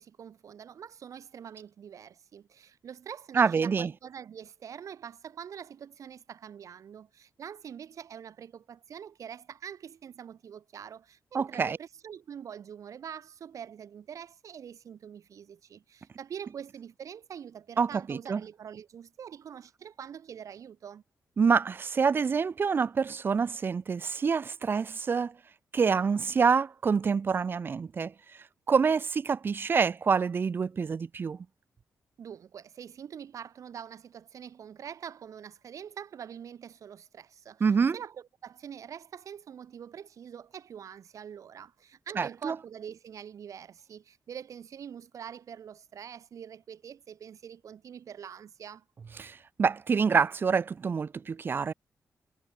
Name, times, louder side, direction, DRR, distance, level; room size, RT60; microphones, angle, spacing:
voice 1, 0.0-21.0 32.2-48.8, right 8 dB, 60° right, 1.0 m, -45 dB
voice 2, 3.3-3.9 11.3-11.8 17.8-18.4 21.4-25.3 25.7-28.1 28.7-31.4 37.6-38.0 42.2-42.5 49.2-51.7, right 5 dB, 35° right, 0.5 m, -26 dB
wide cardioid pair, 175°, 6 cm